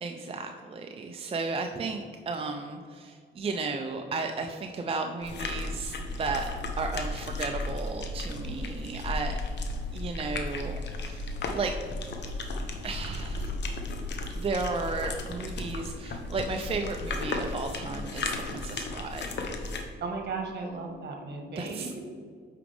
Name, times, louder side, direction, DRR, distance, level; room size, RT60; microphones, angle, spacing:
voice 1, 0.0-6.5 6.8-9.4 9.9-11.7 12.8-13.5 14.4-19.4 21.6-22.0, right 3 dB, 30° right, 4 dB, 0.5 m, -34 dB
sound 1, 5.2-19.8, left 2 dB, 60° left, 1.0 m, -34 dB
voice 2, 20.0-22.0, right 4 dB, 55° right, 2 dB, 1.5 m, -36 dB
8.3 x 5.0 x 3.5 m, 2.1 s
cardioid pair, 90°, 20 cm